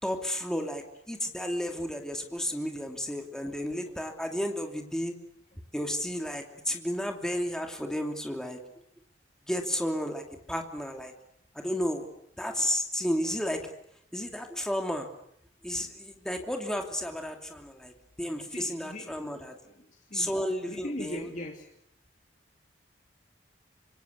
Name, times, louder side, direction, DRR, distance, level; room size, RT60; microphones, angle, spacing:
voice 1, 0.0-5.2 5.7-8.6 9.5-11.1 11.5-12.1 12.4-13.7 14.1-15.1 15.6-17.9 18.2-19.5 20.1-21.3, equal, 5° left, 3 dB, 2.8 m, -32 dB
voice 2, 18.5-19.2 19.6-19.8 20.1-20.3 20.7-21.6, left 1 dB, 40° left, 1 dB, 2.7 m, -39 dB
26.5 x 25.5 x 8.3 m, 0.73 s
head